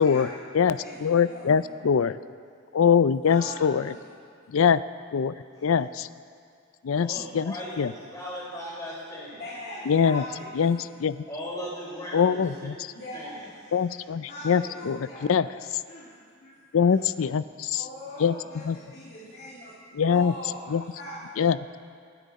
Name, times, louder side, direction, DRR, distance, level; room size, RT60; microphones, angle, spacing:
voice 1, 0.0-0.4 0.7-1.8 3.2-4.1 7.1-7.2 9.4-10.9 12.9-13.4 14.3-15.3 15.9-16.9 17.7-21.3, equal, 50° left, -8 dB, 2.4 m, -41 dB
voice 2, 0.5-2.1 2.7-3.8 4.5-4.8 5.1-5.3 5.6-6.1 6.8-7.9 9.9-10.2 10.6-11.1 12.1-12.7 13.7-15.0 15.3-15.5 16.7-17.8 18.2-18.3 18.7-18.8 19.9-20.3 20.7-20.8 21.4-21.6, left 7 dB, 70° left, 15 dB, 0.4 m, -23 dB
voice 3, 7.0-9.4 11.3-12.7 13.1-13.4 13.8-14.1, equal, 15° left, -5 dB, 4.1 m, -38 dB
26.0 x 10.0 x 4.1 m, 2.2 s
head